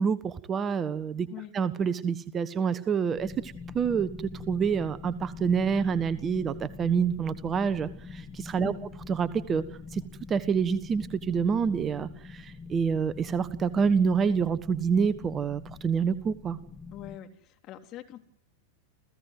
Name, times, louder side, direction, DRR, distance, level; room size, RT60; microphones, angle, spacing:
voice 1, 0.0-1.3 1.5-8.7 9.1-9.6 9.9-10.0 10.3-16.6, right 6 dB, 25° right, 15 dB, 1.3 m, -27 dB
sound 1, 3.2-17.2, left 4 dB, 15° left, 2.0 m, -44 dB
voice 2, 8.6-8.9 16.9-18.2, left 12 dB, 35° left, 5 dB, 3.5 m, -43 dB
30.0 x 16.0 x 9.5 m, 0.73 s
figure-of-eight pair, 90°, 0 cm